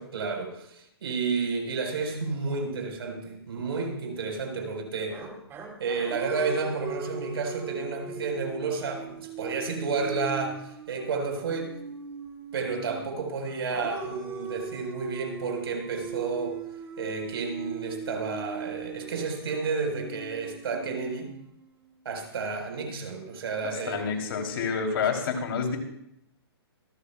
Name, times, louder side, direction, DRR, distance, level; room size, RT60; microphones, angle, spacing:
voice 1, 0.0-5.2 5.8-11.7 12.5-16.6 17.0-21.3 22.0-24.1, right 4 dB, 70° right, 3 dB, 4.3 m, -31 dB
sound 1, 5.1-13.2 13.7-21.8, right 5 dB, 20° right, 1.9 m, -40 dB
voice 2, 23.6-25.8, left 5 dB, 60° left, 3 dB, 3.1 m, -28 dB
25.0 x 12.5 x 2.3 m, 0.76 s
hypercardioid pair, 150°, 13 cm